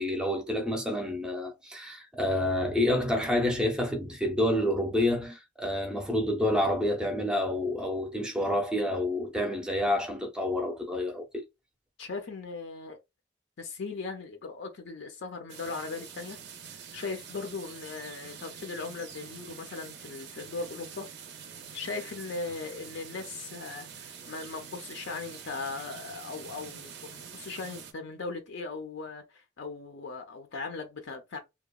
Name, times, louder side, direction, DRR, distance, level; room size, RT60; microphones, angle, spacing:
voice 1, 0.0-11.4, left 1 dB, 5° right, 0.5 m, -28 dB
voice 2, 12.0-13.0 13.6-16.4 16.6-21.1 21.7-31.4, left 4 dB, 65° left, 0.5 m, -38 dB
sound 1, 15.5-27.9, right 7 dB, 55° right, 0.5 m, -46 dB
2.8 x 2.1 x 2.3 m
head